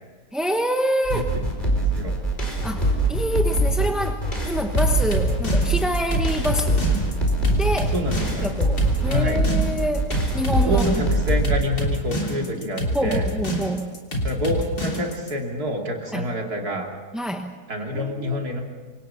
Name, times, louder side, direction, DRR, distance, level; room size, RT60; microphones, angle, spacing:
voice 1, 0.3-1.3 2.6-6.9 7.6-7.9 8.4-10.1 10.3-10.9 12.9-13.9 16.1-16.3 17.1-17.5 17.9-18.5, equal, ahead, 4 dB, 0.8 m, -26 dB
sound 1, 1.1-11.5, right 1 dB, 30° left, 5.1 m, -23 dB
voice 2, 1.7-2.1 7.9-8.5 9.1-9.4 10.7-13.3 14.2-16.9 17.7-18.6, equal, 70° right, 1 dB, 3.5 m, -27 dB
sound 2, 4.8-15.3, equal, 75° left, 4.0 m, -27 dB
27.5 x 25.5 x 5.8 m, 1.4 s
omnidirectional pair, 1.7 m